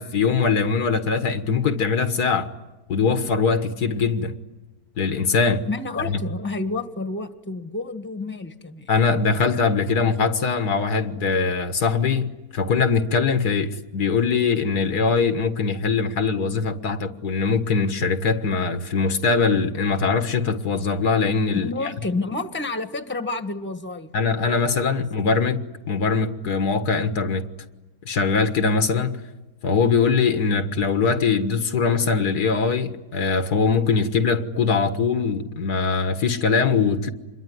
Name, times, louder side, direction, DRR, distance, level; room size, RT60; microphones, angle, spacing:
voice 1, 0.0-2.5 2.9-4.4 5.0-5.6 6.0-6.2 8.9-21.7 24.1-27.5 28.1-29.2 29.6-37.1, left 5 dB, 80° left, 2.0 m, -22 dB
voice 2, 5.7-8.9 9.9-10.1 21.6-24.1, left 3 dB, 5° left, 1.4 m, -30 dB
27.0 x 22.0 x 9.6 m
omnidirectional pair, 1.7 m